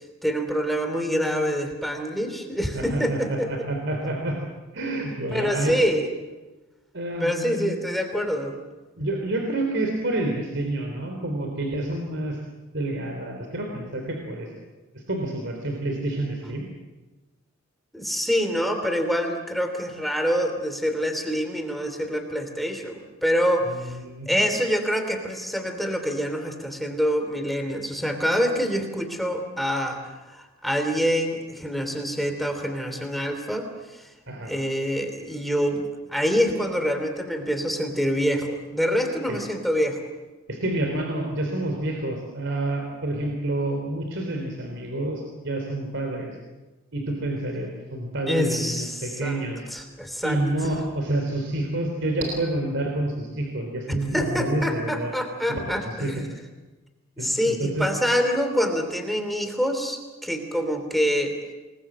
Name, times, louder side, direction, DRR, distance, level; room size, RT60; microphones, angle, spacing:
voice 1, 0.2-3.5 5.3-6.1 7.2-8.6 17.9-23.9 24.3-30.0 30.3-33.7 34.5-40.0 48.3-49.4 49.7-50.4 54.1-56.2 57.2-61.3, equal, ahead, 5 dB, 3.0 m, -26 dB
voice 2, 2.7-4.4 4.7-5.8 6.9-7.8 9.0-12.4 12.7-14.5 14.9-16.7 23.6-24.5 34.3-34.5 39.3-39.4 40.5-46.4 46.9-49.6 50.2-55.1 55.5-56.3 57.2-57.9, right 1 dB, 65° right, 2 dB, 3.7 m, -28 dB
27.0 x 21.0 x 7.6 m, 1.2 s
head